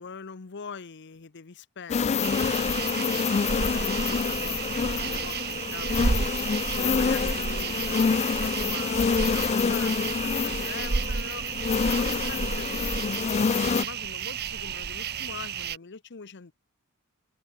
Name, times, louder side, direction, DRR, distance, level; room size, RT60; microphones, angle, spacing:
voice 1, 0.0-6.1 6.8-11.5 11.9-16.5, left 5 dB, 55° left, 0.8 m, -43 dB
sound 1, 1.9-13.8, left 5 dB, 30° left, 0.3 m, -27 dB
sound 2, 2.2-15.8, right 6 dB, 50° right, 0.7 m, -32 dB
head